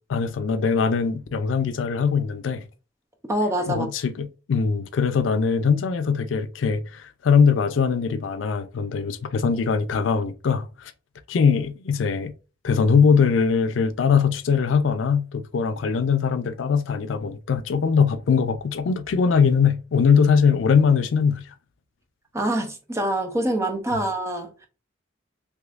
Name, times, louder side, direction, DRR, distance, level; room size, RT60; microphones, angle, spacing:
voice 1, 0.1-2.6 3.7-10.9 11.3-12.3 12.6-21.4, left 6 dB, 85° left, 0.4 m, -21 dB
voice 2, 3.3-3.9 22.3-24.7, right 1 dB, 15° right, 0.6 m, -25 dB
3.5 x 3.1 x 2.4 m
head